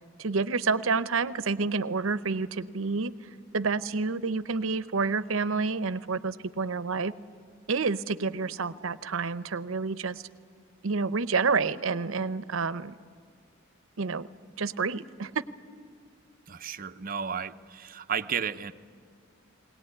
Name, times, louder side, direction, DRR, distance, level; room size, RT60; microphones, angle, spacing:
voice 1, 0.2-3.1 3.5-7.1 7.7-10.2 10.8-12.9 14.0-14.3 14.6-15.4, right 4 dB, 80° right, 15 dB, 0.7 m, -29 dB
voice 2, 16.5-18.7, right 7 dB, 45° right, 9 dB, 0.7 m, -33 dB
21.5 x 18.5 x 9.8 m, 2.2 s
head